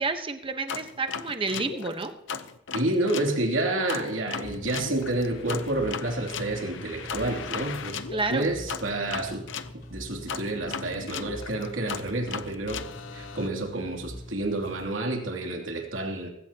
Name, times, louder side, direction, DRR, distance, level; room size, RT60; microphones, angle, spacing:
voice 1, 0.0-2.1 8.1-8.5, right 3 dB, 30° right, 7 dB, 1.1 m, -30 dB
sound 1, 0.7-3.3 3.9-9.7 10.3-13.5, left 6 dB, 70° left, 0.8 m, -37 dB
voice 2, 2.7-8.0 8.3-9.5 9.9-12.8 13.1-16.3, right 2 dB, 90° right, 1 dB, 2.9 m, -29 dB
sound 2, 4.4-15.0, left 1 dB, 90° left, 2.9 m, -44 dB
19.5 x 16.5 x 2.9 m, 0.86 s
head